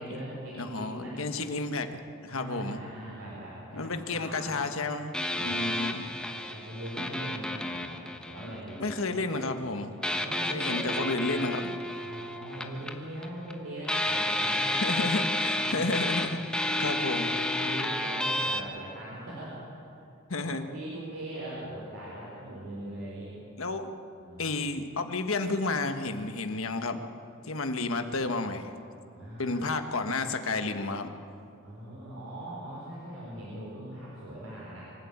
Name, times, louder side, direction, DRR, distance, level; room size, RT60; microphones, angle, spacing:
voice 1, 0.0-1.2 2.3-4.7 5.4-6.0 6.3-9.6 10.1-11.1 12.0-15.9 16.3-19.7 20.7-23.4 24.2-24.6 29.1-29.6 29.9-30.7 31.6-34.9, right 1 dB, 80° right, -6 dB, 4.5 m, -41 dB
voice 2, 0.6-1.9 2.2-2.8 3.7-5.1 5.4-6.0 8.8-9.9 10.5-11.8 14.8-16.4 16.8-17.3 20.3-20.7 23.6-23.9 24.4-27.0 27.5-28.7 29.4-31.1, left 3 dB, 70° left, 7 dB, 1.4 m, -31 dB
sound 1, 5.1-9.0 10.0-13.5 13.8-18.6, left 1 dB, 5° left, 1.1 m, -31 dB
24.5 x 12.0 x 8.8 m, 2.5 s
head